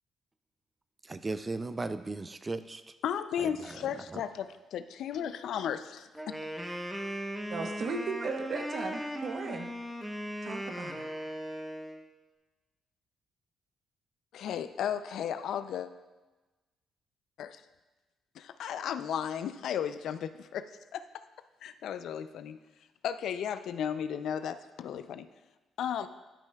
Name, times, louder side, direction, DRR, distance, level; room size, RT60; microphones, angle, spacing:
voice 1, 1.0-2.9 3.4-4.2, right 3 dB, 25° right, 0.4 m, -37 dB
voice 2, 3.0-6.4 14.3-15.9 17.4-17.6 18.4-21.2 21.6-22.6 23.0-25.3 25.8-26.1, left 8 dB, 75° left, 0.4 m, -35 dB
Wind instrument woodwind instrument, 6.1-12.0, equal, 5° right, 0.8 m, -38 dB
voice 3, 7.5-9.7 10.4-11.1, right 4 dB, 55° right, 0.8 m, -36 dB
12.0 x 5.6 x 2.3 m
cardioid pair, 90°, 0 cm